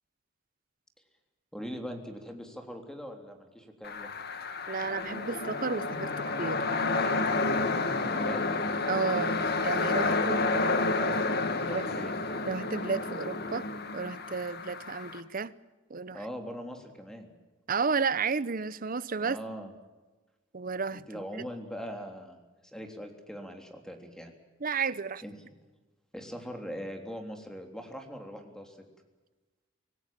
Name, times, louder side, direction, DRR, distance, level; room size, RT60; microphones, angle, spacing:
voice 1, 1.5-4.1 8.1-8.5 10.0-10.4 11.6-12.1 16.1-17.3 19.2-19.7 20.9-22.4 22.7-24.3 25.2-25.3 26.1-28.8, equal, 5° left, 3.3 m, -41 dB
sound 1, 3.8-15.2, left 3 dB, 55° left, 2.1 m, -30 dB
voice 2, 4.7-6.1 6.4-7.4 8.9-10.4 11.7-11.8 12.5-13.7 13.9-15.5 15.9-16.2 17.7-19.4 20.5-21.2 24.6-25.2, right 5 dB, 45° right, 0.9 m, -32 dB
26.5 x 18.5 x 7.5 m
head